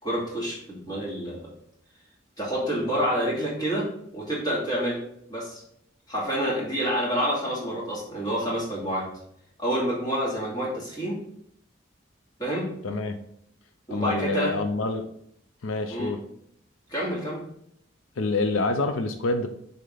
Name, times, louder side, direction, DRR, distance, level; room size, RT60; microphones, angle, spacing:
voice 1, 0.0-1.5 2.4-3.9 4.1-5.0 5.3-5.6 6.1-9.1 9.6-11.2 12.4-12.7 13.9-14.5 15.9-16.1 16.9-17.4, equal, 20° left, -6 dB, 2.5 m, -28 dB
voice 2, 12.8-13.2 13.9-15.1 15.6-16.2 18.2-19.5, left 3 dB, 90° left, 8 dB, 0.6 m, -27 dB
6.5 x 4.3 x 3.9 m, 0.70 s
head